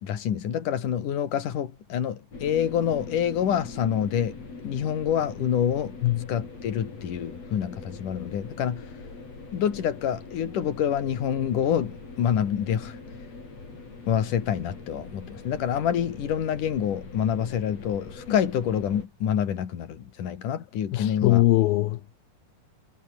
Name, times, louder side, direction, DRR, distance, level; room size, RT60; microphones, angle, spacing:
voice 1, 0.0-4.4 4.6-5.9 6.3-8.9 9.5-13.0 14.1-21.4, left 9 dB, 50° left, 3.5 m, -27 dB
sound 1, 2.3-19.1, left 3 dB, 35° left, 7.3 m, -42 dB
voice 2, 20.9-22.2, left 16 dB, 75° left, 2.4 m, -22 dB
omnidirectional pair, 5.1 m